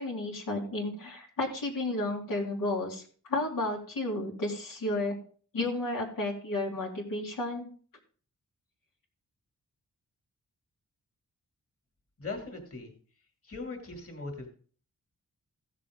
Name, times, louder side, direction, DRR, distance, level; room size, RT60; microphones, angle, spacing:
voice 1, 0.0-5.2 5.5-7.7, left 2 dB, 90° left, -2 dB, 2.6 m, -32 dB
voice 2, 12.2-12.9 13.4-14.5, left 3 dB, 45° left, 3 dB, 2.6 m, -39 dB
15.5 x 6.8 x 3.7 m, 0.43 s
wide cardioid pair, 110°, 32 cm